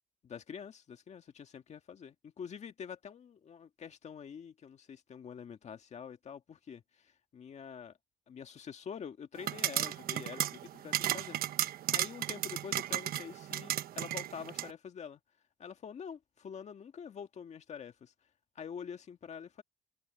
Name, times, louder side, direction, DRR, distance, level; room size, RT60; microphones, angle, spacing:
voice 1, 0.2-7.9 8.3-10.5 10.7-11.4 11.9-15.2 15.6-18.1 18.6-19.6, left 7 dB, 40° left, 1.9 m, -46 dB
sound 1, 9.4-14.7, right 12 dB, 60° right, 1.0 m, -34 dB
cardioid pair, 110°, 17 cm